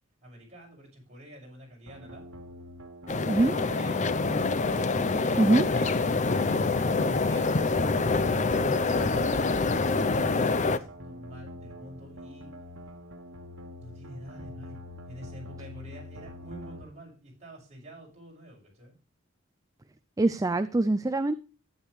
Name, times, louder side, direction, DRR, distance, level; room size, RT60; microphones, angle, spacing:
voice 1, 0.2-2.3 3.4-4.1 5.2-6.6 7.0-7.7 8.0-12.5 13.8-14.8 15.1-19.0, equal, 35° right, -2 dB, 6.3 m, -46 dB
sound 1, 1.9-16.8, left 1 dB, 70° right, 1.6 m, -45 dB
sound 2, 3.1-10.8, left 3 dB, 35° left, 0.6 m, -26 dB
voice 2, 5.4-5.7 20.2-21.3, right 2 dB, 15° right, 12 dB, 0.4 m, -23 dB
12.0 x 9.8 x 3.2 m, 0.33 s
head